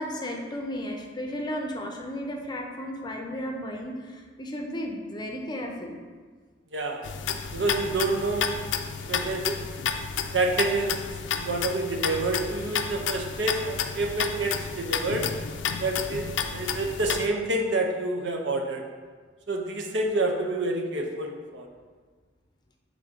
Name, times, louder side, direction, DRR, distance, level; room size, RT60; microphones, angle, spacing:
voice 1, 0.0-6.0, equal, 25° left, 1 dB, 0.6 m, -34 dB
voice 2, 6.7-7.0 7.5-8.7 9.0-9.6 10.3-10.9 11.3-15.3 15.8-18.8 19.5-21.7, right 2 dB, 75° right, 2 dB, 0.8 m, -28 dB
sound 1, 7.0-17.3, left 7 dB, 80° left, 0.4 m, -31 dB
7.2 x 3.8 x 3.7 m, 1.5 s
head